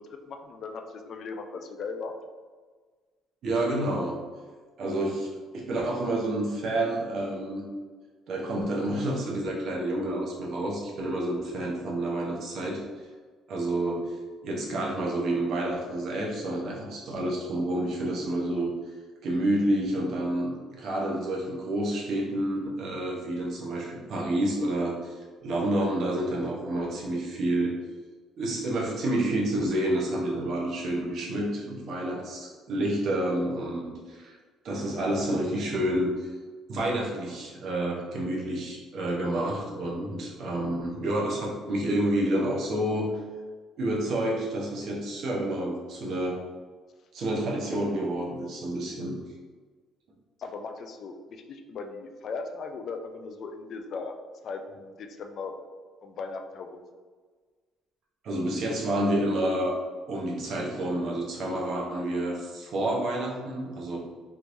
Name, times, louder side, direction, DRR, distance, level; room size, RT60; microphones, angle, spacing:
voice 1, 0.0-2.1 50.4-54.1 54.4-55.5 56.0-56.8, left 4 dB, 45° left, 5 dB, 0.3 m, -38 dB
voice 2, 3.4-4.2 4.8-7.6 8.3-12.9 13.5-14.2 14.4-18.7 19.2-27.7 28.4-34.4 34.6-36.3 36.7-43.1 43.8-46.4 47.1-49.2 58.2-59.7 60.1-64.0, right 1 dB, 50° right, -3 dB, 0.8 m, -29 dB
3.5 x 3.0 x 2.6 m, 1.5 s
cardioid pair, 165°, 0 cm